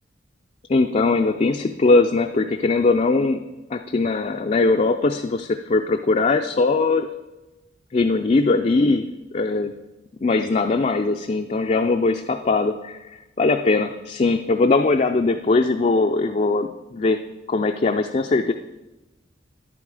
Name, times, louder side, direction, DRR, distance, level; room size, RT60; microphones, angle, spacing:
voice 1, 0.7-3.4 3.7-7.1 7.9-9.1 9.3-9.7 10.2-13.0 13.4-17.2 17.5-18.5, left 3 dB, 35° left, 5 dB, 0.4 m, -20 dB
10.5 x 8.6 x 4.8 m, 1.0 s
head